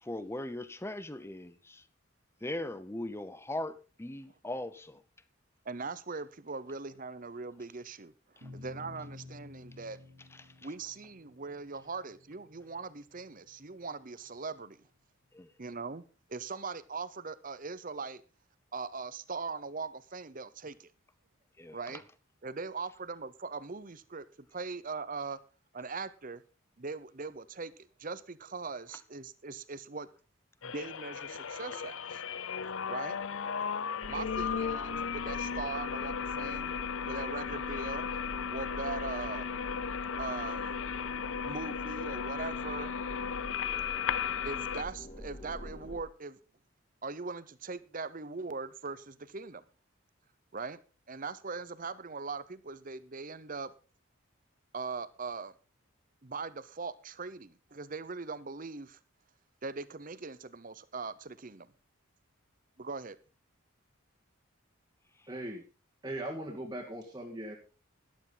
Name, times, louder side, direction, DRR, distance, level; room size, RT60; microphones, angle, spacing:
voice 1, 0.0-1.8 2.4-5.0 8.4-8.5 10.4-10.5 15.3-15.5 21.6-22.0, left 1 dB, 10° left, 0.8 m, -39 dB
voice 2, 5.6-8.1 8.5-10.0 10.6-14.8 15.6-16.0 16.3-18.2 18.7-20.9 21.7-22.0 22.4-25.4 25.7-26.4 26.8-27.7 28.0-30.1 30.6-32.2 32.9-33.2 34.0-36.7 37.0-38.1 38.5-39.5 40.2-40.8 41.4-42.9 44.4-46.4 47.0-49.6 50.5-50.8 51.1-53.7 54.7-55.5 56.2-59.0 59.6-61.7 62.8-63.2, right 4 dB, 40° right, 0.8 m, -40 dB
sound 1, 8.4-15.0, left 2 dB, 80° right, 3.1 m, -53 dB
sound 2, 30.6-44.8, left 7 dB, 70° left, 0.6 m, -35 dB
sound 3, 34.0-46.0, equal, 30° left, 4.2 m, -46 dB
voice 3, 65.3-65.6 66.0-67.6, right 1 dB, 20° right, 1.9 m, -39 dB
13.5 x 11.5 x 4.0 m
head